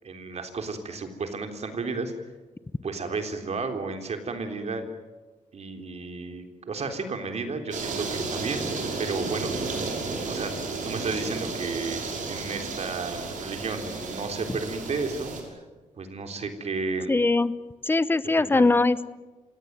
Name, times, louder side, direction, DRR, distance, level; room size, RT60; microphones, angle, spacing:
voice 1, 0.0-2.1 2.8-4.9 5.5-9.5 10.3-10.5 10.8-12.0 12.3-15.3 16.0-17.2 18.4-18.6, right 4 dB, 55° right, 6 dB, 3.6 m, -32 dB
sound 1, 7.7-15.4, right 4 dB, 80° right, 6.0 m, -32 dB
voice 2, 17.1-17.5 17.9-19.2, left 3 dB, 15° left, 15 dB, 0.9 m, -21 dB
27.0 x 17.5 x 9.4 m, 1.3 s
cardioid pair, 100°, 13 cm